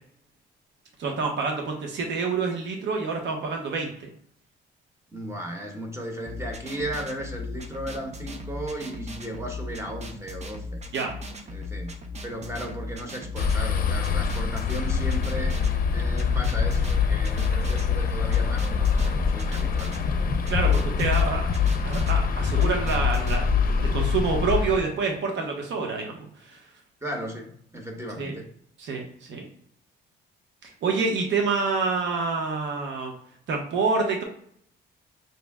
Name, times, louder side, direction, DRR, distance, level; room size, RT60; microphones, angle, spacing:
voice 1, 1.0-4.1 10.9-11.1 20.5-21.5 21.8-26.7 28.2-28.3 28.8-29.5 30.6-33.1 33.5-34.2, right 4 dB, 65° right, 2 dB, 0.8 m, -27 dB
voice 2, 5.1-10.8 11.5-12.0 12.2-20.1 27.0-28.5, right 1 dB, 15° right, 2 dB, 1.0 m, -36 dB
sound 1, 6.3-23.4, left 2 dB, 35° right, 0.7 m, -38 dB
sound 2, 13.4-24.8, left 6 dB, 45° left, 0.6 m, -24 dB
5.5 x 2.0 x 3.5 m, 0.66 s
cardioid pair, 90°, 20 cm